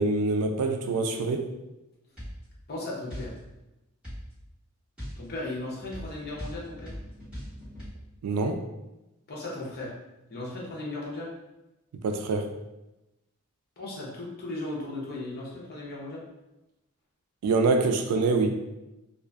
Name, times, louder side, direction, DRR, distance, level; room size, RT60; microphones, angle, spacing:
voice 1, 0.0-1.5 8.2-8.6 12.0-12.5 17.4-18.5, right 3 dB, 85° right, 6 dB, 0.3 m, -25 dB
sound 1, 2.2-2.4 3.1-3.3 4.0-4.3 5.0-7.9, equal, 5° right, 1.4 m, -39 dB
voice 2, 2.7-3.3 5.2-6.9 9.3-9.9 10.3-11.3 13.8-16.2, left 2 dB, 45° left, -4 dB, 0.7 m, -36 dB
2.4 x 2.4 x 2.2 m, 0.97 s
head